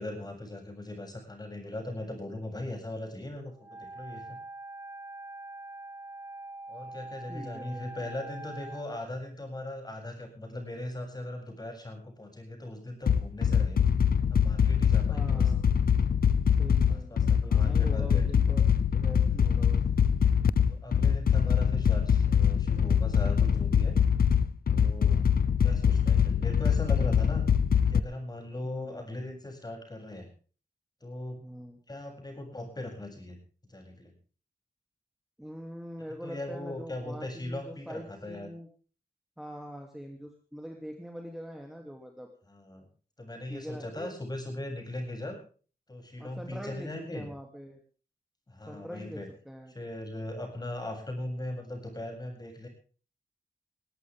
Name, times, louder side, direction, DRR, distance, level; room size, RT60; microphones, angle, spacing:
voice 1, 0.0-4.4 6.7-13.8 14.3-15.5 16.9-18.3 19.3-19.7 20.7-24.0 24.7-25.3 25.6-27.4 27.9-30.3 31.0-31.4 31.9-33.4 33.7-34.1 36.2-38.5 42.5-42.9 43.2-45.4 45.9-47.3 48.5-49.3 49.7-52.7, left 1 dB, 25° left, 3 dB, 7.5 m, -39 dB
Wind instrument woodwind instrument, 3.6-8.9, right 2 dB, 20° right, 1.0 m, -44 dB
voice 2, 7.3-8.3 15.1-15.6 16.6-17.1 17.4-18.6 18.9-19.8 28.6-29.0 31.4-31.8 35.4-38.7 39.4-42.3 43.5-44.2 46.2-47.8 48.7-49.7, equal, ahead, 2 dB, 2.7 m, -43 dB
sound 1, 13.1-28.0, left 7 dB, 70° left, 0.8 m, -24 dB
21.0 x 17.0 x 3.6 m, 0.40 s
wide cardioid pair, 145°, 16 cm